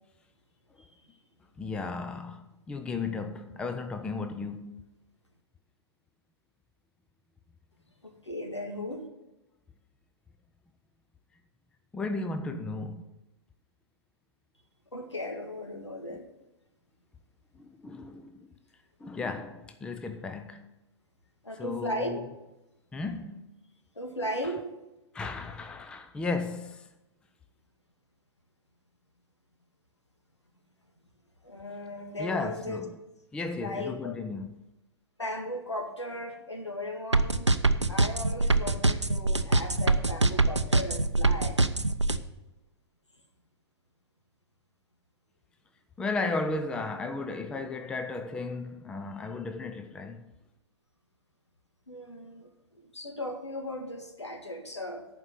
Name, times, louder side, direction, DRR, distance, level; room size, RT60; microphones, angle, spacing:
voice 1, 1.6-4.8 11.9-13.1 16.1-16.2 17.5-18.5 19.0-20.7 21.6-22.2 22.9-23.5 25.1-26.9 32.2-33.0 33.3-34.6 46.0-50.3, left 3 dB, 5° left, 0.5 m, -35 dB
voice 2, 8.0-9.0 14.9-16.3 21.4-22.2 24.0-24.8 31.4-32.8 33.6-34.1 35.2-37.5 37.9-41.6 51.9-55.1, left 1 dB, 80° left, 1.8 m, -37 dB
sound 1, 37.1-42.2, right 2 dB, 90° right, 0.6 m, -23 dB
11.0 x 5.1 x 7.9 m
figure-of-eight pair, 110°, 15 cm